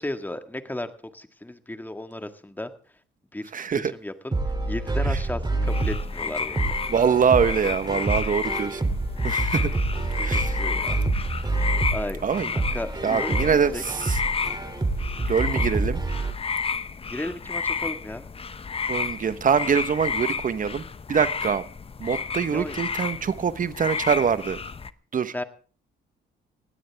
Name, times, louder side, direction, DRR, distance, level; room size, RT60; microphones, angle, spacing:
voice 1, 0.0-2.7 3.3-4.3 4.6-6.8 10.1-11.0 11.9-12.2 12.5-13.8 17.1-18.3 22.5-22.8 25.3-25.4, left 1 dB, 10° left, 8 dB, 1.8 m, -34 dB
voice 2, 3.5-3.9 6.9-8.9 9.2-9.7 10.2-10.6 12.2-12.5 13.0-13.7 14.0-14.2 15.3-16.0 18.9-20.8 21.1-21.6 22.0-24.6 25.1-25.3, right 6 dB, 40° right, 13 dB, 1.2 m, -24 dB
sound 1, 4.3-16.3, right 2 dB, 20° right, 3.0 m, -27 dB
sound 2, 5.7-24.9, left 5 dB, 30° left, 0.8 m, -31 dB
20.0 x 16.0 x 3.5 m, 0.40 s
cardioid pair, 90°, 20 cm